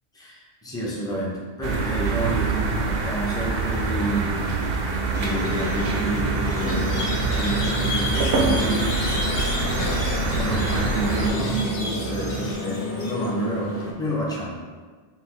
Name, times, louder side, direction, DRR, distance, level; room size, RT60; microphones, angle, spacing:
voice 1, 0.1-4.6 5.1-7.1 7.4-9.0 10.3-14.6, right 1 dB, 5° left, -5 dB, 0.6 m, -29 dB
sound 1, 1.6-11.3, right 3 dB, 65° right, 0.7 m, -26 dB
sound 2, 3.9-12.5, right 6 dB, 90° right, 1.1 m, -34 dB
Squeak, 5.1-13.9, left 2 dB, 60° left, 0.9 m, -29 dB
5.4 x 2.7 x 3.0 m, 1.5 s
omnidirectional pair, 1.1 m